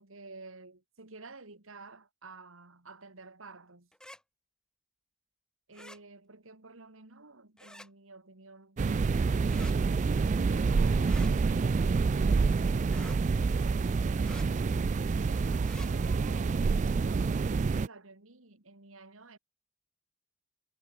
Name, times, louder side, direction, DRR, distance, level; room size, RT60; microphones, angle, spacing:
voice 1, 0.0-3.9 5.7-9.6 10.2-11.2 11.8-14.5 15.1-19.4, right 3 dB, 85° right, 2.5 m, -52 dB
sound 1, 3.9-4.2 5.7-6.0 7.6-7.9 9.5-9.8 11.0-11.3 12.9-13.2 14.2-14.5 15.6-15.9, left 1 dB, 5° left, 6.6 m, -49 dB
sound 2, 8.8-17.9, right 4 dB, 35° right, 0.3 m, -27 dB
head